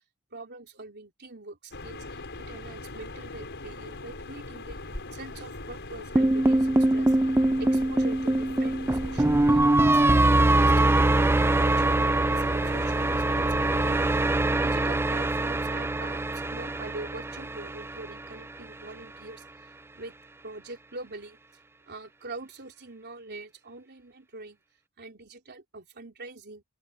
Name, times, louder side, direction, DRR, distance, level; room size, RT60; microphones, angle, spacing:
voice 1, 0.3-4.8 5.1-10.2 10.5-14.0 14.6-19.4 19.9-20.1 20.4-21.4 21.9-24.6 25.0-26.6, right 2 dB, 50° right, 3.7 m, -44 dB
sound 1, 1.7-14.3, left 2 dB, 55° left, 5.8 m, -41 dB
sound 2, 6.2-18.4, right 2 dB, 10° right, 0.4 m, -23 dB
open air
head